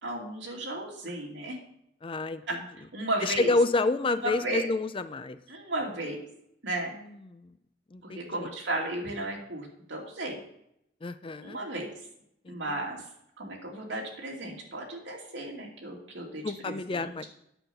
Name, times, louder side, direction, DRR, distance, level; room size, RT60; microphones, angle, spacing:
voice 1, 0.0-1.6 2.9-3.5 4.2-4.7 5.5-6.2 6.6-7.0 8.0-10.4 11.4-11.9 12.5-13.0 13.4-17.1, right 1 dB, 85° right, -1 dB, 2.5 m, -34 dB
voice 2, 2.0-2.4 3.2-5.4 6.9-7.5 7.9-8.5 11.0-11.6 12.4-12.8 16.4-17.2, left 3 dB, 30° left, 12 dB, 0.4 m, -29 dB
9.2 x 5.7 x 6.8 m, 0.76 s
head